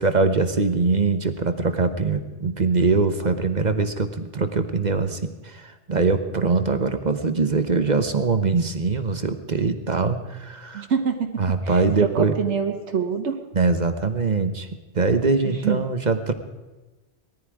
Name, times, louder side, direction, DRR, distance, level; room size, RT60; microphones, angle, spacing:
voice 1, 0.0-10.9 11.4-12.3 13.5-14.7 14.9-16.3, right 4 dB, 40° right, 8 dB, 1.1 m, -22 dB
voice 2, 10.7-13.4 15.4-15.8, right 6 dB, 90° right, 4 dB, 1.5 m, -26 dB
19.5 x 14.0 x 4.8 m, 1.1 s
omnidirectional pair, 1.1 m